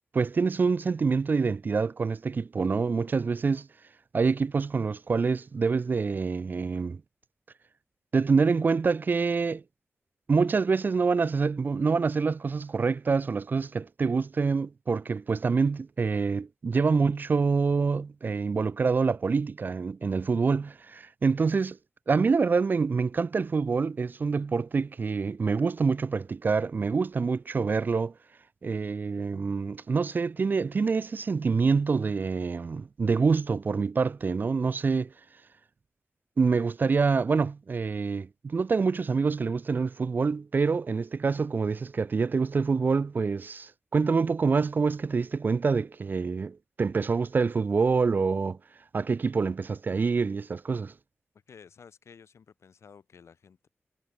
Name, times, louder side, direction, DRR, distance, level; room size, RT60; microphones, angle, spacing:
voice 1, 0.1-3.7 4.1-7.0 8.1-9.6 10.3-21.8 22.1-28.1 28.6-35.1 36.4-48.6 48.9-50.9, right 4 dB, 45° right, 0.7 m, -26 dB
voice 2, 51.5-53.7, left 6 dB, 75° left, 6.0 m, -53 dB
wide cardioid pair, 160°, 5 cm